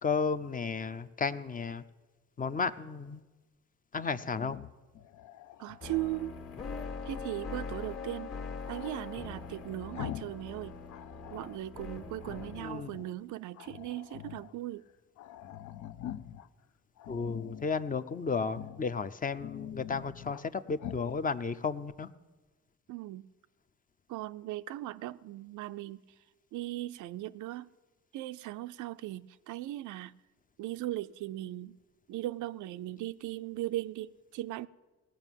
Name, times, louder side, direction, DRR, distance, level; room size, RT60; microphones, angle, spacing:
voice 1, 0.0-1.8 2.4-3.2 3.9-4.6 12.6-12.9 17.1-22.1, left 5 dB, 30° left, 0.5 m, -33 dB
Growling, 4.3-6.3 8.6-10.4 10.7-11.6 12.2-13.1 13.5-14.5 14.9-15.0 15.2-16.5 17.0-17.7 18.5-18.9 19.2-20.5 20.8-21.1, left 11 dB, 70° left, 0.5 m, -45 dB
voice 2, 5.6-6.4 7.0-8.3 8.7-10.7 11.3-14.8 22.9-23.2 24.1-26.0 26.5-27.7 28.1-30.1 30.6-31.8 32.1-34.7, right 16 dB, 75° right, 0.4 m, -38 dB
sound 1, 5.8-12.7, left 4 dB, 50° left, 1.6 m, -42 dB
18.0 x 6.0 x 9.0 m
cardioid pair, 90°, 30 cm